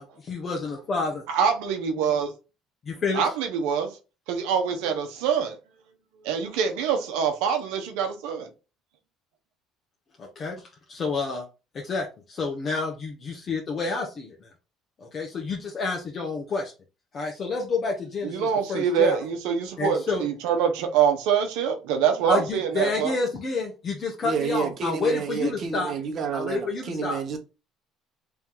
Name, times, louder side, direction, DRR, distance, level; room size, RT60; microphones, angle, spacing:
voice 1, 0.0-1.2 2.8-3.3 10.2-10.5 10.9-11.4 11.7-14.5 15.0-16.7 17.1-19.2 19.8-20.2 22.3-25.9 26.3-27.2, left 4 dB, 40° left, 1.0 m, -29 dB
voice 2, 1.3-2.3 3.1-4.0 4.3-5.6 6.2-8.5 18.2-23.2, right 7 dB, 85° right, 0.9 m, -25 dB
voice 3, 24.2-27.4, right 6 dB, 50° right, 1.2 m, -29 dB
3.5 x 2.9 x 3.7 m
supercardioid pair, 95°, 0 cm